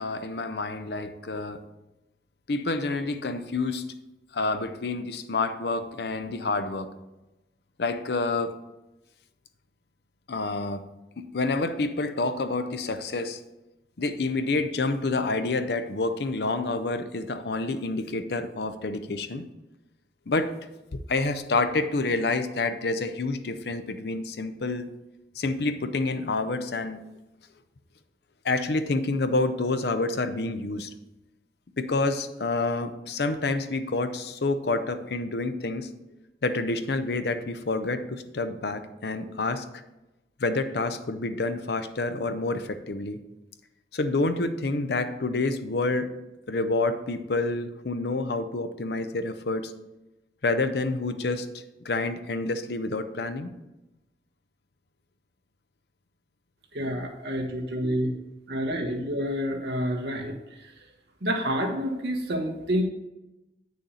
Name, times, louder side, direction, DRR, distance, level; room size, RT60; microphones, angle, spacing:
voice 1, 0.0-1.6 2.5-3.8 4.3-6.9 7.8-8.5 10.3-10.8 11.2-13.4 14.0-19.4 20.3-20.5 20.9-24.9 25.4-27.0 28.4-30.9 31.8-35.9 36.4-39.6 40.4-43.2 43.9-46.1 46.5-49.7 50.4-51.5 51.8-53.5, left 3 dB, 70° left, 10 dB, 0.6 m, -28 dB
voice 2, 56.7-58.1 58.5-60.3 61.2-62.8, equal, 75° right, 2 dB, 1.2 m, -28 dB
8.3 x 6.5 x 4.1 m, 0.99 s
head